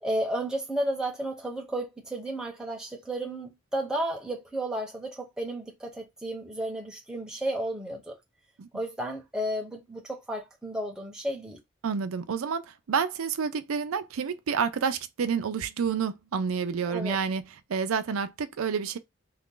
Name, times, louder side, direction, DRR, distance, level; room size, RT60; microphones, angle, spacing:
voice 1, 0.0-8.2 8.7-11.6 16.9-17.2, right 1 dB, 5° right, 0.9 m, -33 dB
voice 2, 11.8-17.4 17.7-19.0, right 6 dB, 90° right, 0.4 m, -29 dB
2.9 x 2.5 x 3.7 m
head